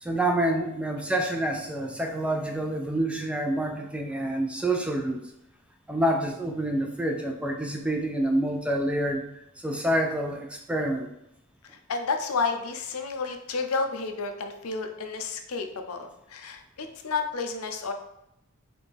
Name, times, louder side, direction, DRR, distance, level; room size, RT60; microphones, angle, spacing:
voice 1, 0.0-5.2 5.9-9.2 9.6-11.1, right 1 dB, 5° right, 2 dB, 0.4 m, -27 dB
voice 2, 11.7-17.9, left 4 dB, 75° left, 5 dB, 0.6 m, -31 dB
4.3 x 3.4 x 3.4 m, 0.83 s
head